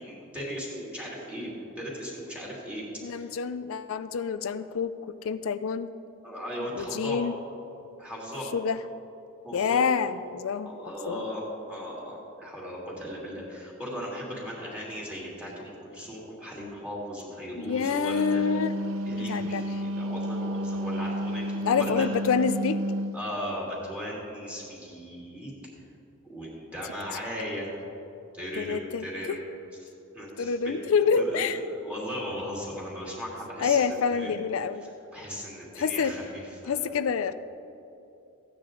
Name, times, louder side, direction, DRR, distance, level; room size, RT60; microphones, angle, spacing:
voice 1, 0.0-2.8 3.1-3.3 6.2-7.2 8.0-8.5 9.4-9.8 10.7-18.4 19.0-22.1 23.1-25.5 26.2-27.7 28.3-29.4 29.8-30.8 31.1-34.3 34.8-37.0, equal, 5° right, -5 dB, 2.7 m, -37 dB
voice 2, 3.0-5.9 6.7-7.3 8.5-8.8 9.5-10.7 11.1-11.2 17.6-18.7 19.3-19.6 21.6-22.8 28.6-29.4 30.4-31.6 33.6-34.9 35.8-36.2 36.7-37.3, left 6 dB, 65° left, 12 dB, 0.4 m, -27 dB
Wind instrument woodwind instrument, 17.9-23.2, right 1 dB, 70° right, 0.6 m, -31 dB
15.0 x 9.5 x 3.9 m, 2.8 s
head